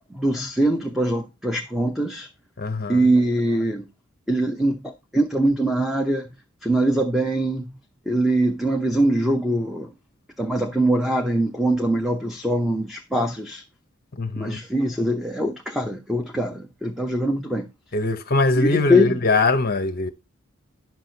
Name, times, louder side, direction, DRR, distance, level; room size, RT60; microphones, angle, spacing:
voice 1, 0.1-2.3 2.9-3.9 4.3-6.2 6.6-7.7 8.1-9.9 10.4-13.6 14.4-17.7 18.5-19.2, right 1 dB, ahead, 0.7 m, -22 dB
voice 2, 2.6-3.0 14.2-14.6 17.9-20.1, left 3 dB, 45° left, 0.8 m, -22 dB
10.5 x 6.2 x 4.0 m
head